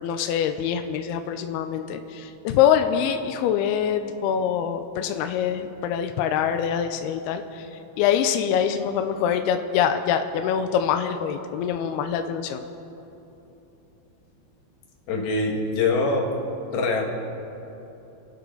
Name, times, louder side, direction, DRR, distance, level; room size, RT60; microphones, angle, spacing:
voice 1, 0.0-7.4 8.0-12.6, left 8 dB, 90° left, 7 dB, 2.3 m, -24 dB
voice 2, 15.1-16.3 16.7-17.0, left 3 dB, 65° left, 0 dB, 3.4 m, -23 dB
30.0 x 12.0 x 3.9 m, 3.0 s
omnidirectional pair, 5.4 m